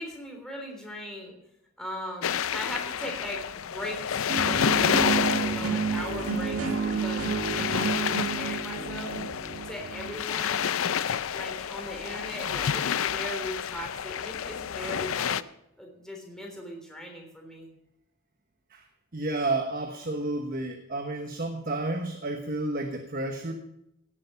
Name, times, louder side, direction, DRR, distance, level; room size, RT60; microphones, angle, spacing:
voice 1, 0.0-1.4 1.8-4.2 4.5-9.1 9.7-10.7 11.3-15.4 15.8-17.7, equal, 5° left, 0 dB, 3.5 m, -39 dB
sound 1, 2.2-15.4, left 8 dB, 70° left, 0.5 m, -30 dB
sound 2, 4.3-10.3, right 5 dB, 85° right, 1.9 m, -30 dB
voice 2, 19.1-23.5, right 2 dB, 40° right, 5 dB, 1.2 m, -31 dB
17.5 x 8.4 x 5.7 m, 0.80 s
head